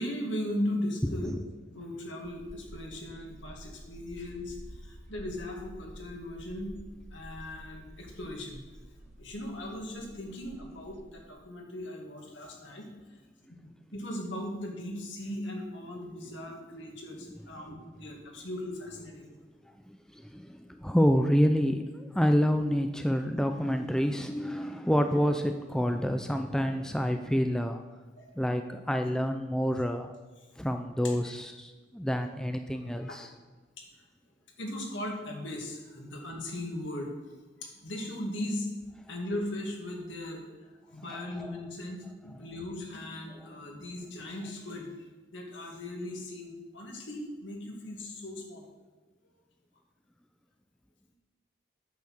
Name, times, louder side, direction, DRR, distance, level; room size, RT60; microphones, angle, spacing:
voice 1, 0.0-1.3 1.7-8.6 9.2-12.9 13.9-19.3 28.2-28.3 31.0-31.3 33.1-33.2 33.8-34.0 34.6-37.1 37.6-38.7 39.1-44.9 45.3-48.7, left 1 dB, 70° left, 1 dB, 2.2 m, -38 dB
voice 2, 1.0-1.4 19.7-27.8 28.4-30.1 30.6-33.3 41.1-41.5, equal, 5° left, 6 dB, 0.4 m, -28 dB
sound 1, 2.2-11.3, right 1 dB, 35° right, 0.7 m, -49 dB
8.5 x 6.8 x 7.7 m, 1.3 s
head